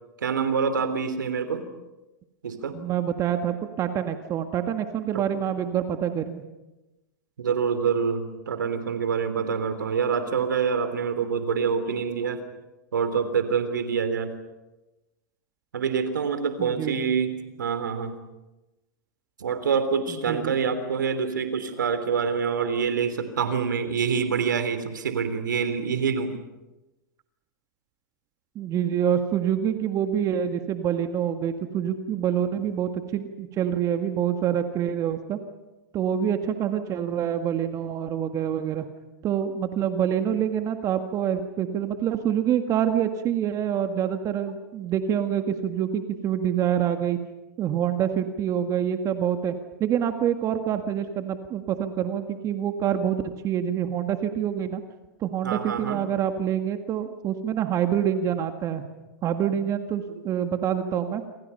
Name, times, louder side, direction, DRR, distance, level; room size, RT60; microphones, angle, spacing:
voice 1, 0.2-1.6 2.4-2.8 5.1-5.2 7.4-12.4 12.9-14.3 15.7-18.2 19.4-26.4 55.4-56.0 60.1-60.2, right 6 dB, 85° right, 10 dB, 3.2 m, -26 dB
voice 2, 2.7-6.4 16.6-17.2 20.1-20.6 28.6-35.4 35.9-38.9 39.2-47.2 47.6-49.6 49.8-54.8 55.2-58.8 59.2-61.2, right 9 dB, 35° right, 7 dB, 1.8 m, -26 dB
27.5 x 27.0 x 5.7 m, 1.0 s
hypercardioid pair, 115°, 10 cm